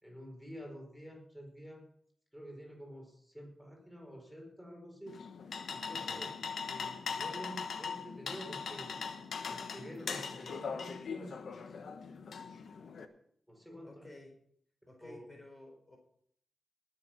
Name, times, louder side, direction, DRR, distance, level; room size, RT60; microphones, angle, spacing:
voice 1, 0.0-1.8 2.3-5.3 5.7-6.3 6.6-8.9 9.5-11.3 11.8-11.9 13.5-14.1 15.0-15.3, equal, ahead, 0 dB, 4.9 m, -49 dB
sound 1, 5.1-13.0, left 5 dB, 75° left, 1.1 m, -40 dB
voice 2, 13.8-14.3 14.9-16.0, left 1 dB, 25° left, 1 dB, 4.3 m, -53 dB
19.0 x 7.2 x 6.0 m, 0.66 s
cardioid pair, 70°, 0 cm